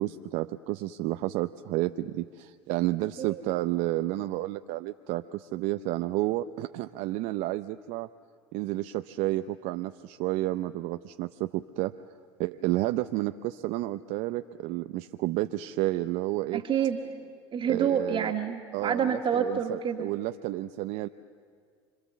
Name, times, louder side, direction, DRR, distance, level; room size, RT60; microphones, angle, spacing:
voice 1, 0.0-8.1 8.5-11.9 12.4-16.6 17.6-18.3 18.7-21.1, right 16 dB, 60° right, 9 dB, 0.7 m, -31 dB
voice 2, 16.5-17.3 17.5-20.1, right 7 dB, 35° right, 1 dB, 1.8 m, -28 dB
26.5 x 24.0 x 7.2 m, 2.1 s
hypercardioid pair, 85°, 15 cm